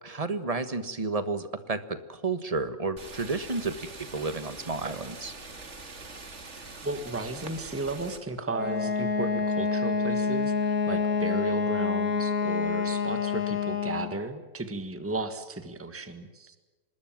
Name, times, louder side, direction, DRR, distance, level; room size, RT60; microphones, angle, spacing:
voice 1, 0.0-5.3, right 3 dB, 25° right, 11 dB, 1.4 m, -31 dB
sound 1, 3.0-8.2, right 3 dB, 50° right, 2.6 m, -43 dB
voice 2, 6.8-16.6, right 2 dB, 10° right, 9 dB, 1.5 m, -34 dB
Wind instrument woodwind instrument, 8.5-14.2, left 5 dB, 75° left, 1.9 m, -27 dB
25.5 x 20.5 x 7.5 m, 1.2 s
omnidirectional pair, 1.5 m